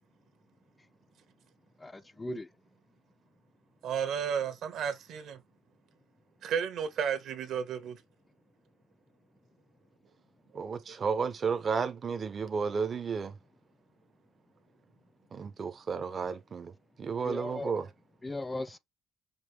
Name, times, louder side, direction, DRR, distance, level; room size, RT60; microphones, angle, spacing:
voice 1, 1.8-2.5 17.3-17.7 18.2-18.8, left 2 dB, 15° left, 0.4 m, -38 dB
voice 2, 3.8-5.4 6.4-8.0 10.5-10.6, right 7 dB, 70° right, 1.2 m, -33 dB
voice 3, 10.5-13.3 15.3-16.7 17.0-17.9, right 5 dB, 40° right, 0.6 m, -32 dB
5.3 x 2.6 x 3.2 m
cardioid pair, 115°, 0 cm